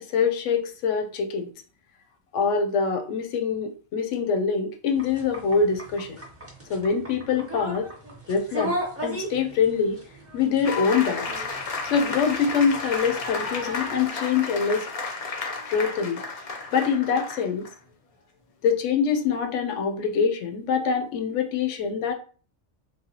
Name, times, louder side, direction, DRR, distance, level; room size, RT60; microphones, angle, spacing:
voice 1, 0.0-1.5 2.3-6.2 6.7-7.9 8.3-8.8 9.0-10.0 10.3-11.3 11.9-14.9 15.7-16.2 16.7-17.7 18.6-22.1, left 6 dB, 90° left, 5 dB, 0.9 m, -24 dB
sound 1, 5.0-14.1, right 1 dB, 15° right, 0.5 m, -37 dB
sound 2, 10.6-17.7, left 4 dB, 55° left, 0.4 m, -32 dB
3.2 x 2.2 x 2.8 m, 0.40 s
omnidirectional pair, 1.2 m